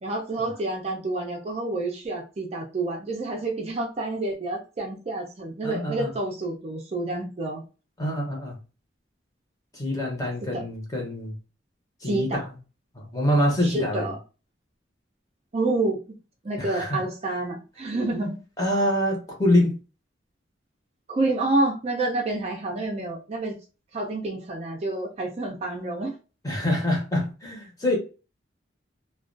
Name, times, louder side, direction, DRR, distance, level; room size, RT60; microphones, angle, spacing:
voice 1, 0.0-7.6 10.5-10.6 12.0-12.4 13.6-14.2 15.5-16.0 16.4-18.4 21.1-23.6 23.9-26.1, right 2 dB, 35° right, 0.4 m, -28 dB
voice 2, 5.6-6.1 8.0-8.6 9.7-11.3 12.0-12.4 12.9-14.1 16.6-17.0 18.6-19.7 26.4-28.0, left 1 dB, 20° left, 0.8 m, -25 dB
2.3 x 2.2 x 2.4 m
head